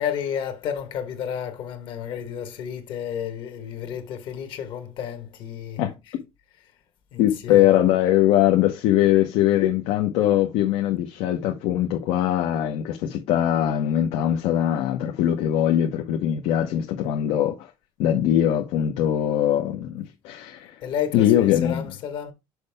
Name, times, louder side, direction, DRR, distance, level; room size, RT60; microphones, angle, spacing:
voice 1, 0.0-6.2 6.5-6.7 7.1-7.8 20.8-22.3, left 9 dB, 55° left, 1.3 m, -32 dB
voice 2, 7.2-17.7 18.0-20.7 21.1-21.8, left 12 dB, 80° left, 1.0 m, -21 dB
6.3 x 5.5 x 3.4 m
cardioid pair, 180°, 10 cm